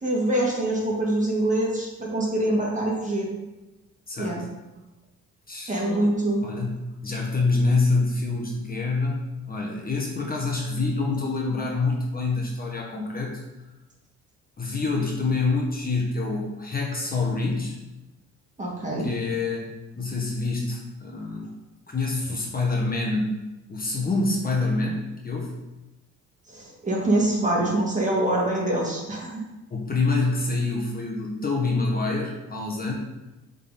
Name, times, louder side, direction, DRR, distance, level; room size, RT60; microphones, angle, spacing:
voice 1, 0.0-3.3 4.2-4.4 5.7-6.4 18.6-19.1 26.5-29.4, right 1 dB, 25° right, -3 dB, 2.2 m, -24 dB
voice 2, 4.1-4.5 5.5-5.8 6.4-9.2 9.5-13.4 14.6-17.8 19.0-19.7 19.9-21.5 21.9-23.4 23.7-25.0 25.2-25.5 29.7-32.9, left 3 dB, 30° left, -1 dB, 1.3 m, -26 dB
7.2 x 4.1 x 4.2 m, 1.0 s
cardioid pair, 90°, 30 cm